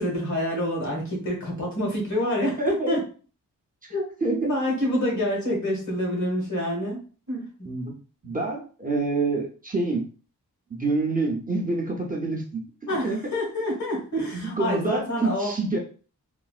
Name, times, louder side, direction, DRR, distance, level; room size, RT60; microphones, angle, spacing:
voice 1, 0.0-3.0 3.9-4.1 4.4-7.0 7.3-7.5 12.9-15.5, left 1 dB, 60° left, -2 dB, 1.7 m, -27 dB
voice 2, 2.4-3.0 4.2-4.5 7.7-8.0 8.2-10.1 10.7-13.2 14.3-15.8, right 3 dB, 25° right, -1 dB, 0.6 m, -27 dB
3.8 x 2.5 x 2.4 m, 0.38 s
wide cardioid pair, 135°, 33 cm